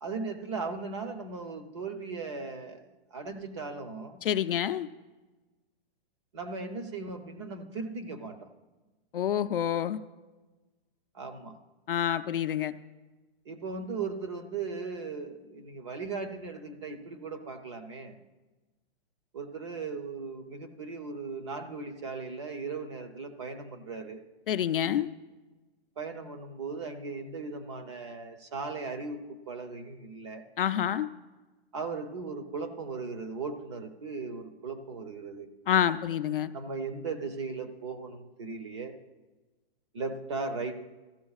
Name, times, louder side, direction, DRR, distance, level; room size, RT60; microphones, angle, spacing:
voice 1, 0.0-2.8 3.1-4.2 6.3-8.5 11.1-11.6 13.5-18.1 19.3-24.2 26.0-30.4 31.7-35.5 36.5-39.0 39.9-40.7, right 4 dB, 30° right, 7 dB, 0.7 m, -37 dB
voice 2, 4.2-4.9 9.1-10.0 11.9-12.7 24.5-25.1 30.6-31.1 35.7-36.5, left 10 dB, 60° left, 10 dB, 0.5 m, -27 dB
14.5 x 13.0 x 2.4 m, 1.2 s
hypercardioid pair, 180°, 31 cm